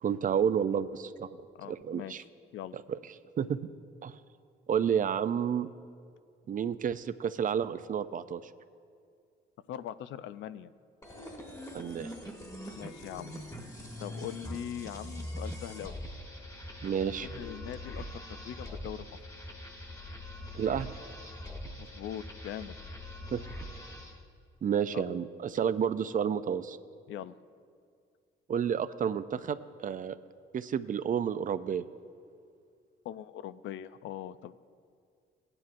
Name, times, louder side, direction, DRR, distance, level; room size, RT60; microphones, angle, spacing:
voice 1, 0.0-1.4 1.7-2.2 2.7-3.0 3.4-3.6 4.0-4.2 4.7-5.7 6.5-8.4 11.7-12.1 16.8-17.3 20.5-20.9 23.3-23.4 24.6-26.8 28.5-30.2 30.5-31.8, right 8 dB, 45° right, 13 dB, 0.4 m, -30 dB
voice 2, 1.6-2.3 2.5-2.8 9.7-10.7 12.7-13.3 13.6-13.7 14.0-15.9 17.2-19.1 21.8-22.8 24.9-25.0 27.1-27.3 33.0-34.5, left 11 dB, 75° left, 14 dB, 0.4 m, -41 dB
sound 1, 11.0-24.2, left 1 dB, 15° left, 1.3 m, -43 dB
17.0 x 9.7 x 2.5 m, 2.2 s
cardioid pair, 90°, 20 cm